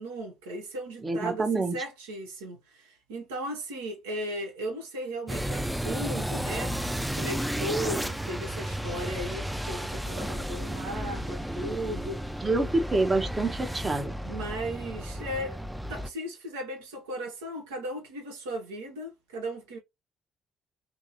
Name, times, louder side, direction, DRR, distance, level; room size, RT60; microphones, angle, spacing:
voice 1, 0.0-6.8 7.2-12.2 14.2-15.6 15.9-19.8, right 1 dB, 75° right, 0.8 m, -36 dB
voice 2, 1.0-1.8 12.4-14.2, right 2 dB, 25° right, 0.8 m, -27 dB
sound 1, 5.3-16.1, equal, 5° right, 0.4 m, -33 dB
2.8 x 2.7 x 2.7 m
figure-of-eight pair, 45°, 0 cm